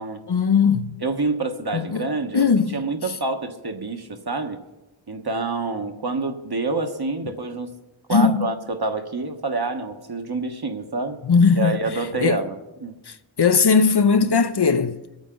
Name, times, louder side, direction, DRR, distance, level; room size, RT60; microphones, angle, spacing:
voice 1, 0.3-1.0 1.7-2.0 2.3-2.8 8.1-8.5 11.3-12.4 13.1-15.0, left 5 dB, 55° left, 0.8 m, -19 dB
voice 2, 1.0-2.5 2.7-4.6 5.1-7.7 8.1-11.2 11.5-13.0, right 3 dB, 50° right, 1.3 m, -27 dB
23.5 x 9.0 x 3.8 m
wide cardioid pair, 50°, 48 cm